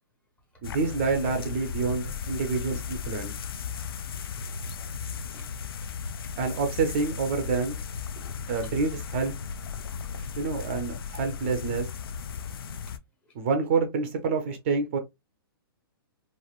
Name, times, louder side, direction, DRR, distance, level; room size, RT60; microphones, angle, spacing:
sound 1, 0.6-13.0, left 6 dB, 75° left, 0.4 m, -36 dB
voice 1, 0.6-3.3 6.4-7.8 8.5-9.3 10.4-11.9 13.3-15.0, right 4 dB, 30° right, 0.5 m, -27 dB
voice 2, 4.2-4.6 4.9-5.5 6.2-6.3 8.1-8.7 10.1-10.4 12.2-12.3 13.3-13.4, right 1 dB, 10° left, 0.7 m, -51 dB
3.0 x 2.4 x 2.3 m
hypercardioid pair, 165°, 12 cm